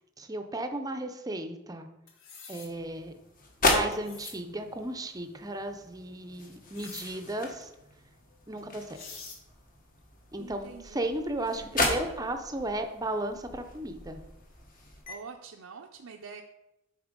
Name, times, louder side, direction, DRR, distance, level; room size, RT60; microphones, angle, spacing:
voice 1, 0.2-1.9 2.5-3.1 3.6-7.7 8.5-9.0 10.3-14.2, right 1 dB, 20° right, 7 dB, 0.6 m, -35 dB
sound 1, 2.1-2.7 3.9-4.4 6.7-7.1 8.6-8.7 8.9-9.4, left 5 dB, 75° left, 1.5 m, -45 dB
sound 2, 2.6-15.1, left 2 dB, 40° left, 1.4 m, -35 dB
voice 2, 10.4-11.1 11.5-12.2 15.1-16.4, right 5 dB, 90° right, 2 dB, 0.6 m, -46 dB
8.1 x 4.3 x 5.2 m, 0.93 s
head